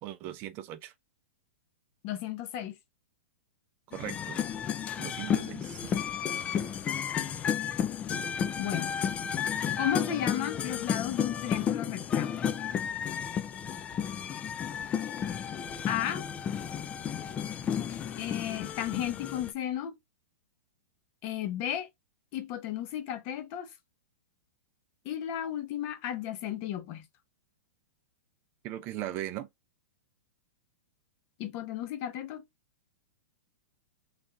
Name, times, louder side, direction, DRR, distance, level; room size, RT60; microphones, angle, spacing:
voice 1, 0.0-0.9 3.9-4.4 5.0-6.0 28.6-29.5, right 13 dB, 30° right, 0.6 m, -39 dB
voice 2, 2.0-2.7 8.6-9.0 9.8-12.3 15.9-16.2 18.2-20.0 21.2-21.9 22.3-23.7 25.0-27.1 31.4-32.4, left 11 dB, 35° left, 0.9 m, -34 dB
sound 1, 3.9-19.5, left 8 dB, 15° left, 0.3 m, -32 dB
3.3 x 2.5 x 3.5 m
hypercardioid pair, 150°, 7 cm